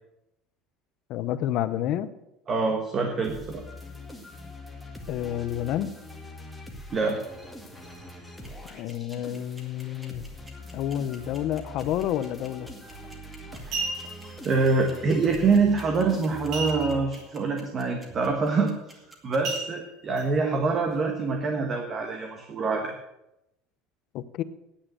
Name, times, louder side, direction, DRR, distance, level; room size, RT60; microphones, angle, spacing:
voice 1, 1.1-2.1 5.1-5.9 8.7-10.3 10.7-12.7 24.1-24.4, left 11 dB, 50° left, 13 dB, 0.8 m, -29 dB
voice 2, 2.5-3.6 6.9-7.2 13.6-13.8 14.4-18.7 19.2-22.9, right 4 dB, 30° right, 3 dB, 1.4 m, -25 dB
sound 1, 3.2-17.5, left 1 dB, ahead, 1.8 m, -43 dB
sound 2, 8.2-19.6, equal, 15° right, 2.4 m, -50 dB
sound 3, 12.9-13.1 13.5-14.3 16.5-17.2 17.5-17.6 18.1-18.4 19.4-20.2 20.8-20.9, right 3 dB, 55° right, 4.2 m, -33 dB
10.0 x 8.7 x 7.8 m, 0.87 s
cardioid pair, 155°, 0 cm